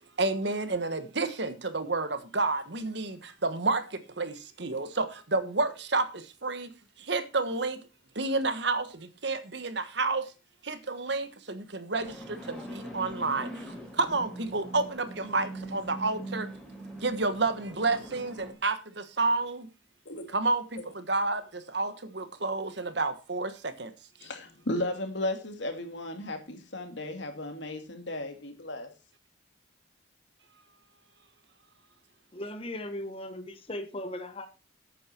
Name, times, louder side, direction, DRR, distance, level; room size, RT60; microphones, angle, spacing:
voice 1, 0.2-6.7 7.0-7.8 8.1-10.3 10.6-16.5 17.0-19.7 20.3-23.9, right 3 dB, 60° right, 1.4 m, -30 dB
sound 1, 12.0-18.5, right 1 dB, 5° left, 5.2 m, -42 dB
voice 2, 24.2-28.9, left 1 dB, 65° left, 2.4 m, -35 dB
voice 3, 32.3-34.5, left 1 dB, 30° left, 1.1 m, -37 dB
12.0 x 9.1 x 4.5 m
head